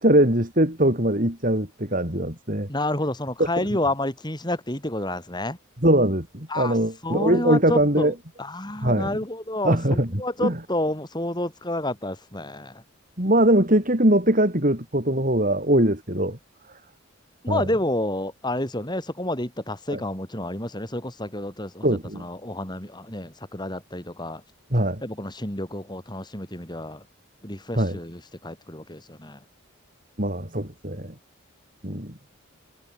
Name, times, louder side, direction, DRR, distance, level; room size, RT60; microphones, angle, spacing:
voice 1, 0.0-2.7 5.8-8.1 8.8-9.2 9.6-10.6 13.2-16.4 17.5-17.7 19.9-20.0 21.8-22.2 24.7-25.0 27.7-28.0 30.2-31.1 31.8-32.1, right 1 dB, 40° right, 5.1 m, -21 dB
voice 2, 2.7-5.6 6.5-6.8 7.0-12.8 17.4-24.4 25.0-27.0 27.4-29.4, left 1 dB, 20° left, 4.4 m, -29 dB
head